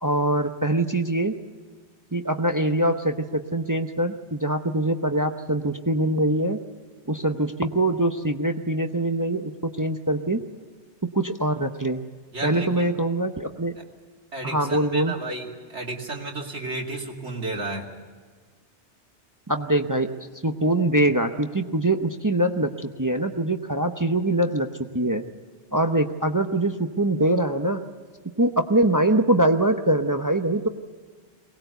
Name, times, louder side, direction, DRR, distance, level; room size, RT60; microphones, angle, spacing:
voice 1, 0.0-1.3 2.1-6.6 7.1-10.4 11.1-12.0 12.4-13.8 14.4-15.1 19.5-20.1 20.4-25.2 25.7-27.8 28.4-30.7, right 1 dB, 20° right, 6 dB, 0.7 m, -23 dB
voice 2, 12.3-12.9 14.3-17.9, right 2 dB, 80° right, -1 dB, 3.0 m, -32 dB
22.5 x 19.0 x 8.1 m, 1.5 s
omnidirectional pair, 1.2 m